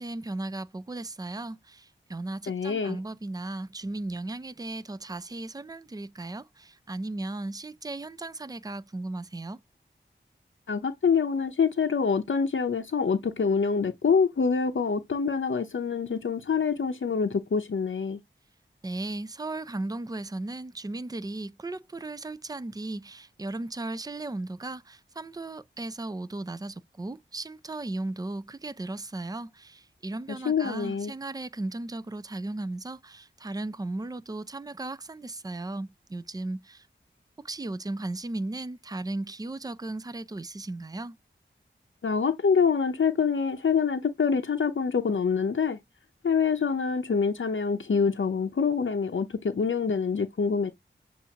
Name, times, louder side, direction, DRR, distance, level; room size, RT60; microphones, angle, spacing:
voice 1, 0.0-9.6 18.8-36.9 37.4-41.2, right 2 dB, 20° right, 0.4 m, -36 dB
voice 2, 2.5-3.0 10.7-18.2 30.4-31.1 42.0-45.8 46.2-50.7, left 5 dB, 75° left, 0.7 m, -26 dB
7.1 x 2.5 x 2.8 m
wide cardioid pair, 75°, 20 cm